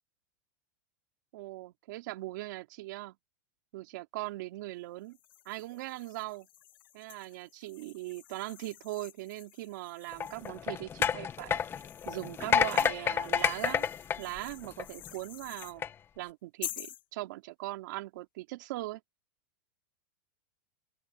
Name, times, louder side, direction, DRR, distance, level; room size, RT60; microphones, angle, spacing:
voice 1, 1.3-3.1 3.7-5.2 5.4-6.5 6.9-11.6 12.0-13.8 14.2-15.8 16.2-19.0, right 19 dB, 65° right, 3.0 m, -40 dB
sound 1, 5.1-10.7 11.3-15.8 16.6-17.0, left 13 dB, 80° left, 1.6 m, -48 dB
sound 2, 10.1-15.1 15.6-15.9, left 7 dB, 20° left, 1.0 m, -30 dB
open air
supercardioid pair, 135°, 11 cm